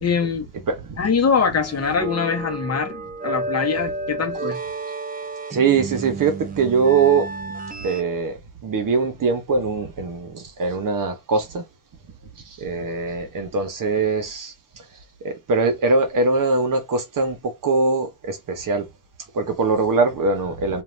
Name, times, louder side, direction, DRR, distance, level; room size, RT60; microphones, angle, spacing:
voice 1, 0.0-0.5 1.0-4.6, left 5 dB, 40° left, 0.9 m, -23 dB
voice 2, 0.7-1.0 5.5-7.3 7.8-11.6 12.4-14.5 15.2-18.9 19.3-20.8, right 4 dB, 55° right, 1.0 m, -22 dB
sound 1, 1.6-8.0, right 2 dB, 20° right, 0.4 m, -31 dB
2.6 x 2.5 x 3.2 m
wide cardioid pair, 150°, 39 cm